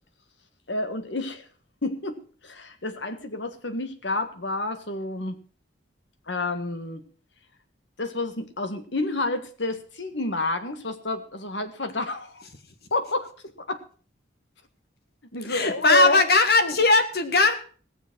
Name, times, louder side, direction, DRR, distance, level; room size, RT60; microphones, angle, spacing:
voice 1, 0.7-1.4 1.8-5.3 6.3-7.0 8.0-12.4 12.9-13.3 13.6-13.8 15.3-16.3 16.6-16.8, left 2 dB, 75° left, 9 dB, 1.6 m, -29 dB
voice 2, 15.5-17.5, left 3 dB, 55° left, 8 dB, 1.5 m, -19 dB
18.0 x 7.1 x 6.1 m, 0.42 s
head